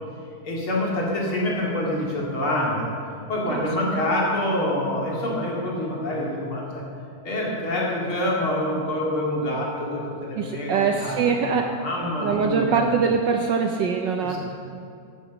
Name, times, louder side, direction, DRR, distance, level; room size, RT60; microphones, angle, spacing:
voice 1, 0.4-2.9 3.3-6.8 7.2-11.5 11.8-12.8 14.2-14.4, left 1 dB, 85° left, -3 dB, 3.5 m, -26 dB
voice 2, 10.4-11.7 12.2-14.4, right 6 dB, 65° right, 3 dB, 1.4 m, -23 dB
14.5 x 10.0 x 6.3 m, 2.4 s
omnidirectional pair, 2.3 m